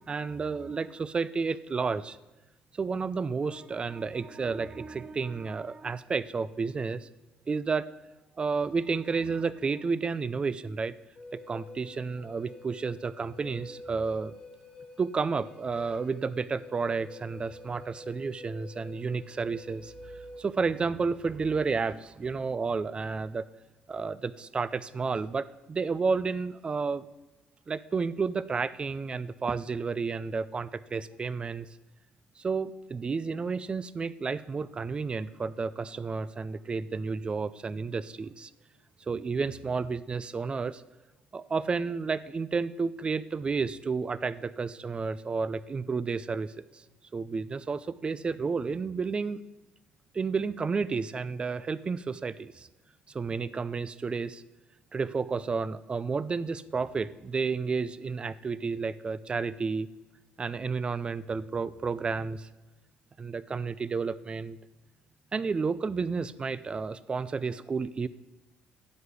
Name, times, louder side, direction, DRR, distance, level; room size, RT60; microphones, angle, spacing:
voice 1, 0.1-2.2 2.8-7.1 7.5-7.9 8.4-10.9 11.3-14.4 15.0-20.1 20.4-23.4 23.9-27.1 27.7-31.7 32.4-38.5 39.1-40.8 41.3-46.8 47.1-49.4 50.1-52.7 53.1-54.4 54.9-59.9 60.4-62.5 63.2-64.6 65.3-68.1, right 4 dB, 30° right, 17 dB, 0.5 m, -31 dB
Wind instrument woodwind instrument, 11.2-20.4, left 2 dB, 25° left, 1.6 m, -48 dB
10.5 x 7.9 x 8.3 m, 1.1 s
cardioid pair, 110°, 4 cm